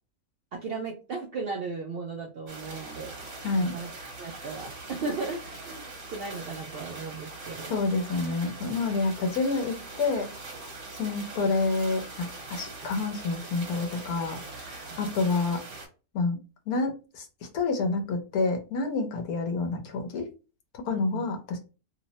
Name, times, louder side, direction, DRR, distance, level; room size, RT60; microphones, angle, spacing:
voice 1, 0.5-3.1 3.6-3.9 4.2-5.8 6.1-7.7 20.9-21.2, right 4 dB, 80° right, 0 dB, 0.5 m, -36 dB
sound 1, 2.5-15.9, right 2 dB, 55° right, 1.2 m, -42 dB
voice 2, 3.4-3.8 7.7-10.3 11.0-15.6 16.1-16.4 16.7-20.3 20.8-21.6, left 3 dB, 90° left, 4 dB, 1.2 m, -28 dB
2.9 x 2.0 x 2.7 m, 0.32 s
omnidirectional pair, 1.5 m